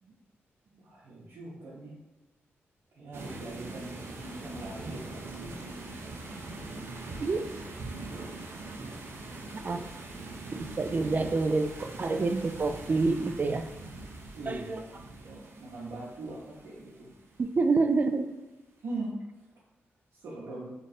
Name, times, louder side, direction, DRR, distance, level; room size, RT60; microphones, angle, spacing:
voice 1, 0.7-2.0 2.9-7.7 9.1-9.8 11.5-11.6 14.3-17.1 18.8-19.1 20.2-20.7, right 2 dB, 85° right, -9 dB, 1.0 m, -42 dB
sound 1, 3.1-17.7, right 2 dB, 65° right, 0.7 m, -42 dB
voice 2, 10.5-13.7 14.5-14.8 17.4-18.3, right 3 dB, 40° right, 7 dB, 0.4 m, -27 dB
3.3 x 2.5 x 4.1 m, 1.2 s
cardioid pair, 80°, 5 cm